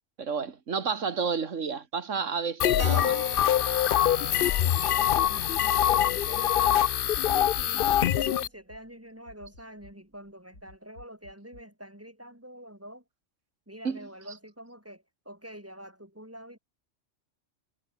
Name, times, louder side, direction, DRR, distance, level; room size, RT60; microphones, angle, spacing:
voice 1, 0.2-3.2 13.8-14.0, right 5 dB, 80° right, 2.1 m, -31 dB
sound 1, 2.6-8.5, left 11 dB, 60° left, 0.6 m, -24 dB
Keyboard (musical), 2.8-7.8 8.1-8.2 8.5-8.6 8.9-9.0 9.5-9.9, right 2 dB, 45° right, 3.2 m, -44 dB
sound 2, 3.0-3.1 3.7-4.0 4.4-4.5 5.0-5.4 5.9-6.2 6.7-6.8 7.3-7.7 8.3-8.8 9.3-9.9 10.5-11.6, left 1 dB, 85° left, 7.5 m, -52 dB
voice 2, 4.0-6.9 7.3-13.0 13.7-16.6, equal, 10° right, 4.0 m, -46 dB
omnidirectional pair, 1.3 m